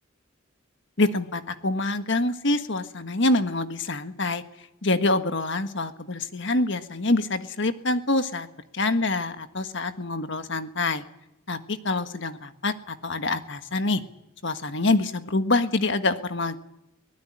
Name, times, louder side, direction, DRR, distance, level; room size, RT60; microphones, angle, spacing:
voice 1, 1.0-4.4 4.8-8.5 8.7-11.0 11.5-14.0 14.4-16.6, left 2 dB, 60° left, 9 dB, 1.6 m, -26 dB
23.0 x 18.5 x 10.0 m, 0.86 s
head